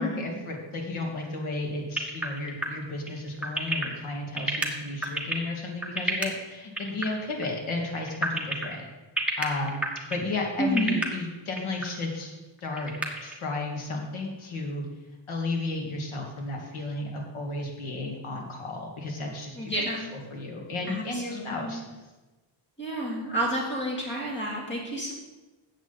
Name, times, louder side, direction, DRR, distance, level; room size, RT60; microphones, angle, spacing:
voice 1, 0.0-8.9 9.4-9.8 10.1-12.9 13.2-14.9 15.3-19.8 20.1-21.8, left 2 dB, 85° left, 1 dB, 2.5 m, -33 dB
sound 1, 2.0-6.3 6.8-7.1 7.3-7.5 7.9-8.7 9.2-10.3 10.6-11.0 11.6-11.9 12.2-12.3 12.6-13.4, right 2 dB, 5° right, 1.3 m, -29 dB
voice 2, 10.6-11.0 19.6-20.1 20.9-21.8 22.8-25.1, right 1 dB, 20° left, -3 dB, 3.2 m, -30 dB
13.5 x 8.3 x 4.1 m, 1.1 s
wide cardioid pair, 165°, 48 cm